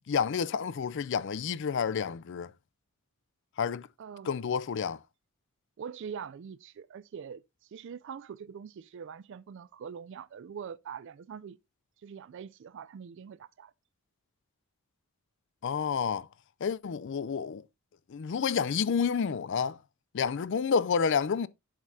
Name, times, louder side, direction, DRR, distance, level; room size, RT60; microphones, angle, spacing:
voice 1, 0.1-2.5 3.6-3.9 4.3-5.0 15.6-16.3 16.6-17.6 18.1-19.8 20.1-21.5, left 6 dB, 55° left, 0.4 m, -29 dB
voice 2, 4.0-4.3 5.8-7.4 7.7-11.6 12.0-13.7, right 7 dB, 55° right, 0.3 m, -43 dB
10.5 x 6.5 x 2.6 m
head